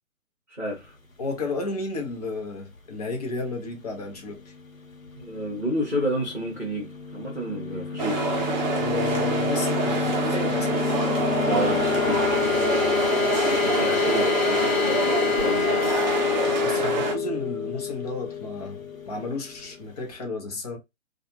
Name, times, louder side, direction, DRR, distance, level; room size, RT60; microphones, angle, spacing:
voice 1, 0.5-1.0 5.1-8.3 11.5-12.2 13.5-15.7, equal, ahead, 0.5 m, -31 dB
voice 2, 1.2-4.4 8.8-10.8 16.2-20.8, left 2 dB, 30° left, 0.8 m, -33 dB
sound 1, 7.2-19.7, left 6 dB, 85° left, 1.1 m, -26 dB
sound 2, 8.0-17.2, right 4 dB, 35° right, 0.7 m, -26 dB
2.4 x 2.4 x 2.9 m
figure-of-eight pair, 135°, 40 cm